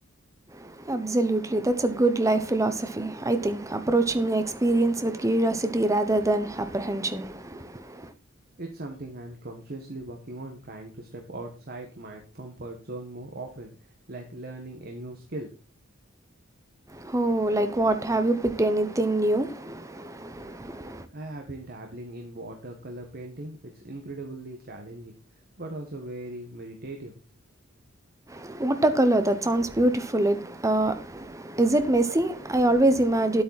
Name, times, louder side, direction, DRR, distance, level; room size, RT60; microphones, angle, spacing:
voice 1, 0.5-8.1 16.9-21.1 28.3-33.4, right 2 dB, 15° right, 0.9 m, -25 dB
voice 2, 8.6-15.6 21.1-25.1 25.6-27.1, right 2 dB, 50° right, 1.5 m, -39 dB
10.0 x 8.5 x 4.2 m
head